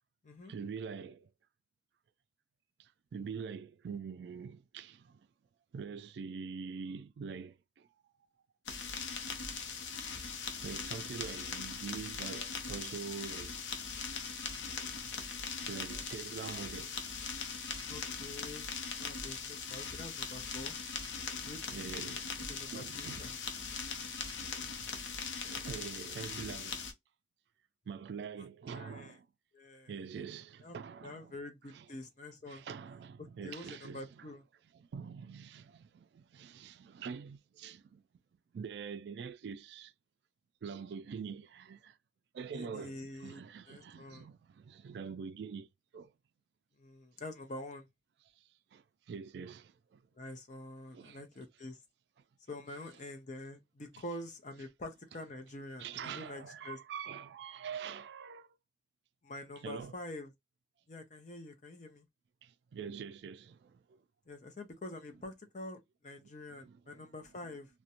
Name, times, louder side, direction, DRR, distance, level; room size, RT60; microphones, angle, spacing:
voice 1, 0.5-1.3 2.8-5.3 5.7-7.9 10.6-13.6 15.6-17.0 21.7-23.3 23.6-26.8 27.9-29.3 29.9-31.4 31.7-31.9 32.5-34.3 34.7-38.0 38.5-39.9 40.6-42.0 42.3-45.7 45.9-46.1 48.7-50.0 50.9-51.2 53.9-54.0 55.8-58.6 59.6-60.0 62.4-64.0 66.6-67.1, right 6 dB, 65° right, 0.3 m, -45 dB
sound 1, 8.7-26.9, left 5 dB, 85° left, 0.6 m, -40 dB
voice 2, 17.9-18.7 19.0-20.8 21.4-21.6 22.4-23.4 28.7-29.2 29.5-30.0 30.6-30.8 31.0-32.6 33.2-34.4 42.5-43.4 43.7-44.3 46.8-47.9 50.2-51.8 52.5-56.8 59.2-60.3 60.9-62.1 64.3-67.7, left 1 dB, 40° left, 0.6 m, -46 dB
2.5 x 2.1 x 2.8 m
head